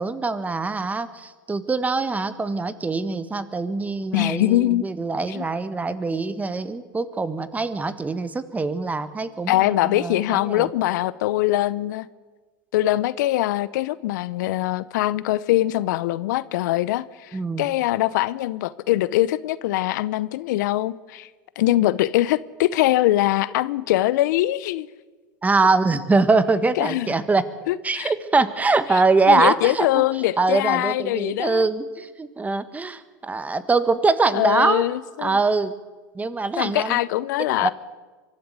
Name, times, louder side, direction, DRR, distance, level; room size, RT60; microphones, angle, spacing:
voice 1, 0.0-10.7 17.3-17.7 25.4-27.4 27.8-30.0 30.4-34.8 35.2-35.7 36.1-37.0 37.6-37.7, right 3 dB, 15° right, 1.4 m, -23 dB
voice 2, 4.1-4.9 5.3-5.4 9.5-12.1 12.7-21.3 21.6-24.9 26.8-27.1 27.7-28.1 28.9-31.7 34.3-35.4 36.6-37.7, left 15 dB, 70° left, 0.7 m, -22 dB
24.0 x 13.5 x 8.2 m
hypercardioid pair, 100°, 10 cm